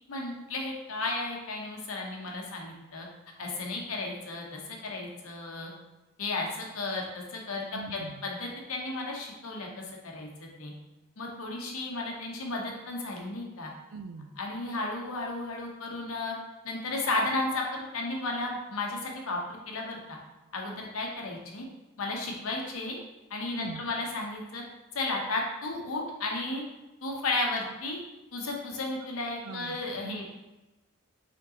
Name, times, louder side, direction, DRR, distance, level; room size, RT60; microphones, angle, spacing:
voice 1, 0.1-3.1 3.4-5.7 6.2-7.6 7.9-10.7 11.2-13.7 14.4-16.3 16.6-20.2 20.5-21.7 22.0-23.0 23.3-24.6 24.9-26.6 27.0-28.0 28.3-30.3, left 2 dB, 80° left, 0 dB, 0.9 m, -34 dB
voice 2, 7.7-8.2 13.9-14.3 23.5-23.8 29.4-29.8 30.0-30.3, right 4 dB, 75° right, 9 dB, 0.4 m, -41 dB
5.1 x 3.7 x 2.8 m, 1.0 s
head